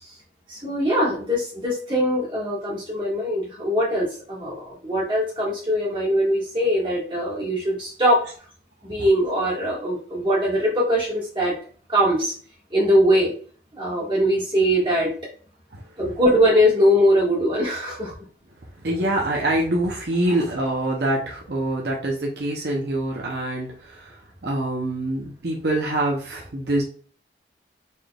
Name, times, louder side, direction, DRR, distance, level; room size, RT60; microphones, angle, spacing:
voice 1, 0.5-8.3 8.8-11.6 11.9-12.3 12.7-13.3 13.7-15.1 16.0-18.1, equal, 30° right, -6 dB, 1.7 m, -21 dB
voice 2, 18.8-24.2 24.4-26.8, right 1 dB, 70° right, -2 dB, 0.8 m, -25 dB
4.3 x 3.4 x 2.3 m, 0.42 s
head